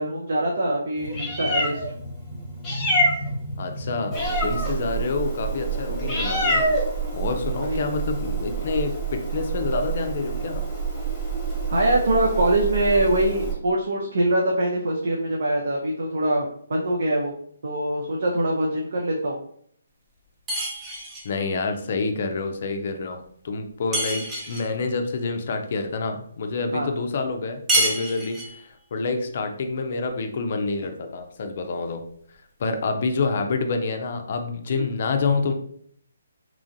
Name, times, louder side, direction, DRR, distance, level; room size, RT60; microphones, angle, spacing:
voice 1, 0.0-1.8 7.6-7.8 11.7-17.3 17.6-19.4 26.7-26.9 34.7-34.9, right 1 dB, 65° right, -1 dB, 0.5 m, -23 dB
Meow, 1.0-13.5, right 2 dB, 15° left, 0.9 m, -27 dB
voice 2, 3.6-6.8 7.1-10.6 21.2-32.0 32.6-35.5, left 4 dB, 50° left, 6 dB, 0.4 m, -27 dB
sound 1, 20.5-21.3 23.9-24.7 27.7-28.6, right 1 dB, 15° right, 0.7 m, -26 dB
3.0 x 2.4 x 2.6 m, 0.64 s
figure-of-eight pair, 145°, 0 cm